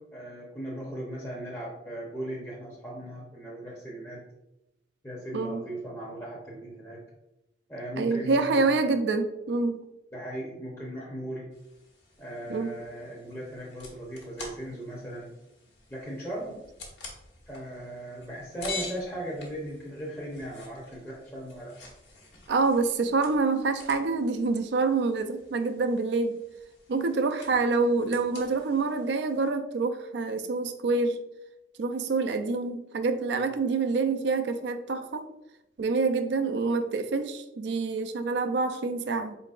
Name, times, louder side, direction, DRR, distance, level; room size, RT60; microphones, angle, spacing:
voice 1, 0.1-4.2 5.0-7.0 7.7-8.6 10.1-11.5 12.2-15.3 15.9-16.6 17.5-21.7, right 1 dB, 15° left, -5 dB, 0.8 m, -38 dB
voice 2, 8.0-9.8 12.5-12.7 22.5-26.4 26.9-31.2 31.8-35.3 35.8-39.4, right 3 dB, 70° right, 8 dB, 0.4 m, -26 dB
sound 1, 11.5-29.5, left 3 dB, 85° left, 1.2 m, -47 dB
4.6 x 3.9 x 2.4 m, 0.90 s
head